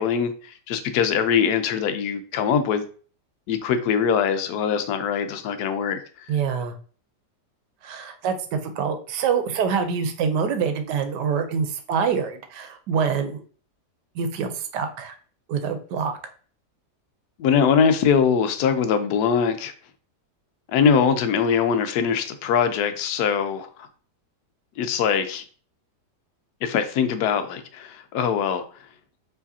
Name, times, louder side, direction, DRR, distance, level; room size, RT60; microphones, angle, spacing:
voice 1, 0.0-2.8 3.5-6.0 17.4-19.7 20.7-23.9 24.8-25.4 26.6-28.6, left 7 dB, 75° left, 1.1 m, -22 dB
voice 2, 6.3-6.7 7.8-13.4 14.1-15.2 15.5-16.2, right 6 dB, 85° right, 1.3 m, -25 dB
4.8 x 3.2 x 2.7 m
omnidirectional pair, 1.8 m